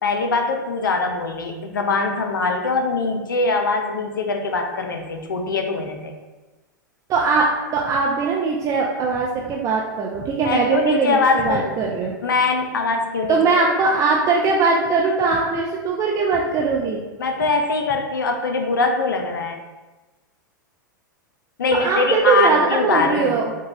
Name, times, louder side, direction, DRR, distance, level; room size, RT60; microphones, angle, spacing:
voice 1, 0.0-6.1 10.4-11.7 12.2-13.6 17.2-19.6 21.6-23.4, left 3 dB, 90° left, 4 dB, 0.4 m, -22 dB
voice 2, 7.1-12.1 13.3-17.0 21.7-23.5, right 4 dB, 30° right, -1 dB, 0.4 m, -20 dB
3.6 x 2.2 x 3.2 m, 1.2 s
hypercardioid pair, 105°, 11 cm